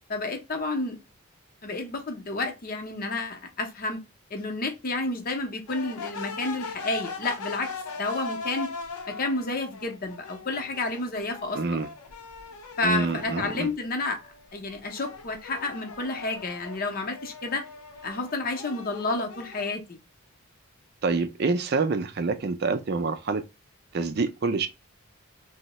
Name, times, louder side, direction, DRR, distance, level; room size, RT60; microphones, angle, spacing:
voice 1, 0.1-1.0 1.6-4.0 4.3-7.7 8.0-8.7 9.1-11.8 12.8-14.2 14.5-17.6 18.0-20.0, left 2 dB, 40° left, 0.6 m, -30 dB
sound 1, 5.7-13.8 14.2-19.7, left 4 dB, 85° left, 0.6 m, -40 dB
voice 2, 11.5-11.9 12.8-13.7 21.0-23.4 23.9-24.7, right 4 dB, 45° right, 0.4 m, -26 dB
2.7 x 2.0 x 4.0 m
head